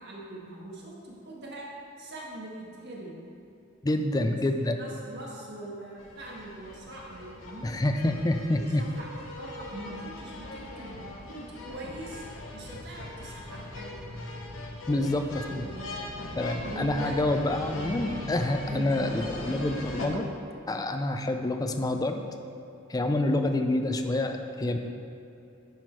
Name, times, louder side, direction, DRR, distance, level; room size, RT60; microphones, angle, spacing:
voice 1, 0.0-1.7 2.0-3.1 4.6-7.9 8.8-9.1 9.4-12.2 12.5-14.1 14.9-16.1 16.7-17.1 18.7-19.4, right 1 dB, 55° right, -4 dB, 1.5 m, -42 dB
voice 2, 3.8-4.8 7.6-8.8 14.9-15.2 15.5-15.7 16.4-20.2 20.7-22.2 22.9-24.8, left 1 dB, 20° left, 6 dB, 0.4 m, -27 dB
sound 1, 6.0-20.1, left 2 dB, 75° left, 1.0 m, -40 dB
10.5 x 4.4 x 4.6 m, 2.7 s
head